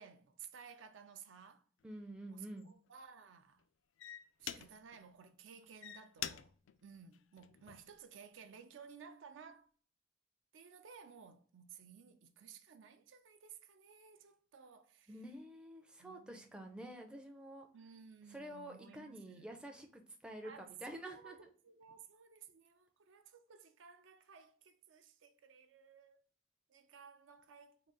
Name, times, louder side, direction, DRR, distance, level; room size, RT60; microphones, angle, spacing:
voice 1, 0.0-1.6 2.3-3.6 4.4-6.5 6.8-9.7 10.5-15.1 16.0-16.5 17.7-19.6 20.4-20.7 21.1-26.2 26.7-27.8, right 6 dB, 75° right, 0.5 m, -57 dB
sound 1, 1.8-2.0 2.6-2.9 3.6-3.7 4.0-5.0 5.6-8.0 8.5-8.9, left 10 dB, 75° left, 0.3 m, -47 dB
voice 2, 1.8-2.7 15.1-17.7 18.3-21.5, right 1 dB, 5° right, 0.4 m, -49 dB
3.7 x 2.3 x 3.7 m
head